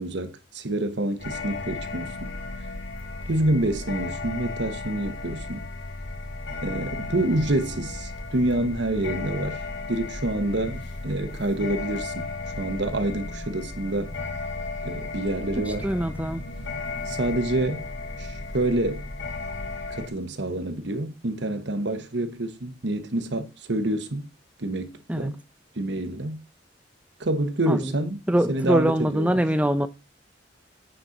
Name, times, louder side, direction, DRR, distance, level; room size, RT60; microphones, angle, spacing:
voice 1, 0.0-2.3 3.3-5.6 6.6-9.6 9.9-12.3 12.6-14.1 14.8-15.9 17.0-17.9 18.2-19.1 19.9-24.3 24.6-25.4 25.7-26.4 27.2-28.2 28.5-29.4, right 1 dB, 65° right, 1.1 m, -27 dB
sound 1, 1.2-20.1, left 3 dB, 75° left, 1.5 m, -34 dB
voice 2, 15.6-16.4 25.1-25.3 27.7-27.9 28.3-29.9, right 1 dB, 10° right, 0.7 m, -23 dB
9.1 x 4.2 x 5.1 m
head